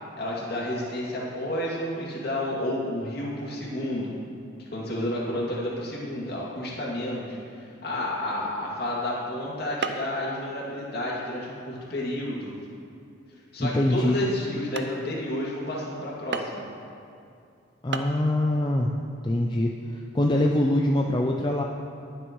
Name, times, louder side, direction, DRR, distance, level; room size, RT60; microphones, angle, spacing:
voice 1, 0.2-4.1 4.7-12.5 13.5-16.6, left 1 dB, 50° left, -5 dB, 2.5 m, -31 dB
sound 1, 8.6-8.9 9.8-10.2 10.6-11.0 11.6-11.7 12.3-12.5 13.1-13.2 13.8-13.9 14.4-14.5 14.8-15.0 16.3-16.7 17.6-17.7 17.9-18.2, right 4 dB, 55° right, 0.6 m, -33 dB
voice 2, 13.6-14.2 17.8-18.9 19.2-21.6, left 1 dB, 20° left, 0 dB, 0.4 m, -24 dB
19.5 x 7.9 x 3.1 m, 2.5 s
head